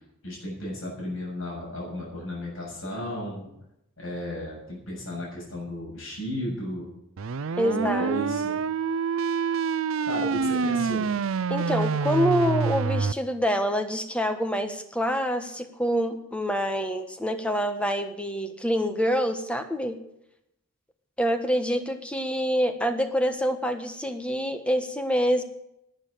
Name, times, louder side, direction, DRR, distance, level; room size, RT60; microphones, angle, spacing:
voice 1, 0.2-3.5 4.0-6.9 7.6-8.6 10.1-11.1, equal, 75° left, -4 dB, 7.6 m, -34 dB
sound 1, 7.2-13.1, right 5 dB, 75° right, 0.5 m, -26 dB
voice 2, 7.6-8.1 11.5-20.0 21.2-25.4, equal, 5° left, 7 dB, 1.3 m, -26 dB
12.0 x 10.0 x 7.4 m, 0.80 s
head